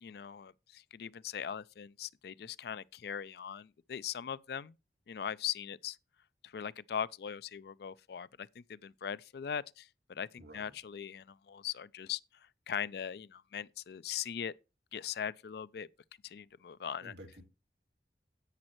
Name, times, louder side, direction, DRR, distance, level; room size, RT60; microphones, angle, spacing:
voice 1, 0.0-4.7 5.1-6.0 6.4-12.2 12.7-14.5 14.9-15.9 16.2-17.1, left 8 dB, 60° left, 0.4 m, -40 dB
voice 2, 10.4-10.8 17.0-17.4, right 1 dB, 70° right, 2.4 m, -51 dB
10.5 x 8.6 x 3.0 m
head